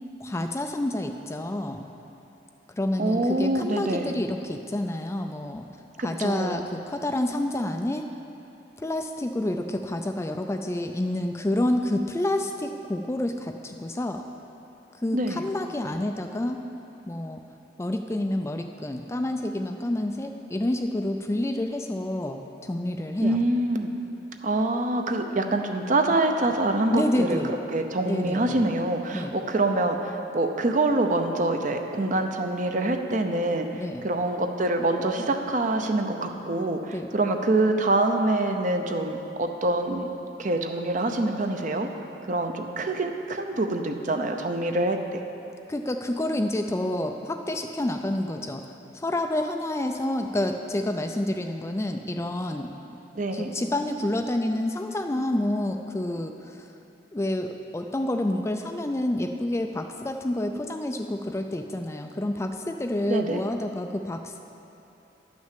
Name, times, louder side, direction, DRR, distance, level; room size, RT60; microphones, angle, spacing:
voice 1, 0.2-1.9 2.7-5.7 6.0-8.1 8.8-14.2 15.0-16.6 17.1-17.4 17.8-23.5 26.9-27.6 28.1-28.6 29.1-29.4 33.7-34.0 36.9-37.1 45.7-48.6 48.9-52.7 53.3-56.7 57.1-64.4, left 1 dB, 15° left, 5 dB, 0.4 m, -28 dB
voice 2, 3.0-4.1 6.0-6.6 15.1-15.4 23.2-23.9 24.4-33.7 34.0-40.1 40.4-41.9 42.2-45.2 53.1-53.5 63.1-63.4, right 2 dB, 45° right, 5 dB, 0.7 m, -25 dB
11.0 x 6.2 x 7.5 m, 3.0 s
head